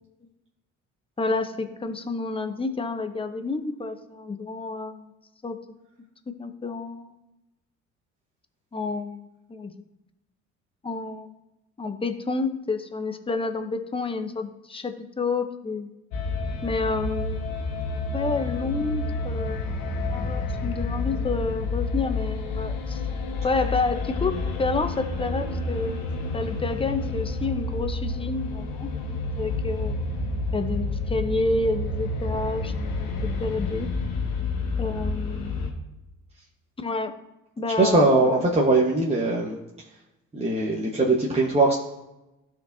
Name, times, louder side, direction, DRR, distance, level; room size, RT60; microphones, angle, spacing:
voice 1, 1.2-5.1 5.4-5.6 6.3-7.2 8.7-9.8 10.8-11.3 11.8-15.9 16.6-17.5 18.1-19.7 20.1-23.0 23.4-26.1 26.3-28.9 29.3-30.0 30.5-32.7 33.0-33.9 34.8-35.7 36.8-37.1 37.6-38.4, left 3 dB, 15° left, 8 dB, 0.8 m, -29 dB
sound 1, 16.1-35.7, left 2 dB, 75° left, 1.4 m, -29 dB
voice 2, 37.8-39.6 40.3-41.8, right 2 dB, 20° right, -4 dB, 1.3 m, -21 dB
13.5 x 4.5 x 2.7 m, 0.95 s
supercardioid pair, 80°, 33 cm